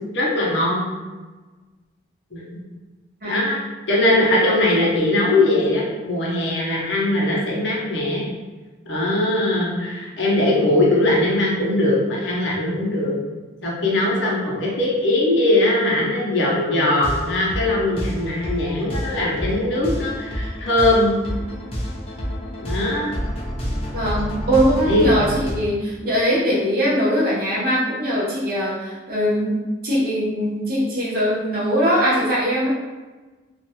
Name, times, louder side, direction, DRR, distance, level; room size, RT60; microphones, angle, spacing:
voice 1, 0.1-0.9 2.3-2.5 3.2-3.6 3.9-8.2 8.9-13.2 13.6-21.1 22.6-23.1 24.8-25.1, left 1 dB, 70° left, -4 dB, 0.7 m, -20 dB
sound 1, 16.8-25.5, equal, 30° left, 0.4 m, -29 dB
voice 2, 23.9-32.7, equal, 50° right, -7 dB, 0.8 m, -21 dB
2.5 x 2.2 x 2.8 m, 1.2 s
head